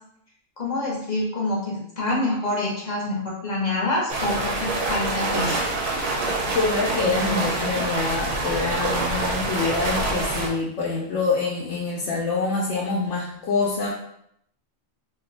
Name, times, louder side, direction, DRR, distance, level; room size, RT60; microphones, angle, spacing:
voice 1, 0.6-5.6, left 2 dB, 40° left, -4 dB, 0.8 m, -26 dB
sound 1, 4.1-10.5, right 2 dB, 60° right, 0.6 m, -26 dB
voice 2, 6.5-13.9, left 4 dB, 70° left, -4 dB, 0.9 m, -25 dB
2.6 x 2.1 x 3.8 m, 0.73 s
omnidirectional pair, 1.3 m